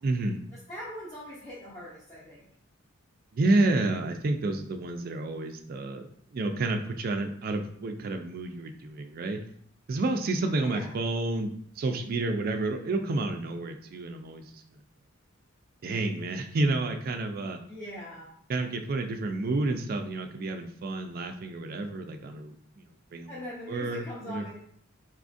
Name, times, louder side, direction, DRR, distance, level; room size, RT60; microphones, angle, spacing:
voice 1, 0.0-0.4 3.3-6.1 6.3-9.4 9.9-11.5 11.8-14.6 15.8-17.6 18.5-23.3 23.7-24.5, right 2 dB, 45° right, 5 dB, 0.3 m, -30 dB
voice 2, 0.7-2.4 10.6-10.9 17.7-18.3 23.3-24.6, equal, 15° left, -9 dB, 0.7 m, -41 dB
4.1 x 2.3 x 2.5 m, 0.64 s
head